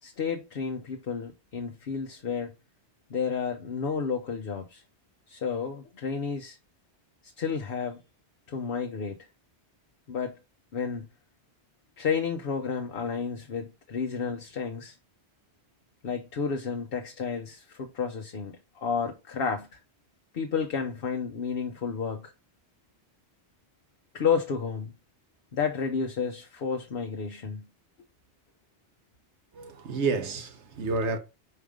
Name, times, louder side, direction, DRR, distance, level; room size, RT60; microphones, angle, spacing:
voice 1, 0.0-2.5 3.1-4.8 5.3-6.6 7.2-8.0 8.5-9.2 10.1-10.3 10.7-11.1 12.0-15.0 16.0-19.8 20.3-22.3 24.1-24.9 25.5-27.7, left 6 dB, 60° left, 1.0 m, -31 dB
voice 2, 29.5-31.2, right 4 dB, 80° right, 1.3 m, -29 dB
5.1 x 4.6 x 4.9 m
omnidirectional pair, 1.2 m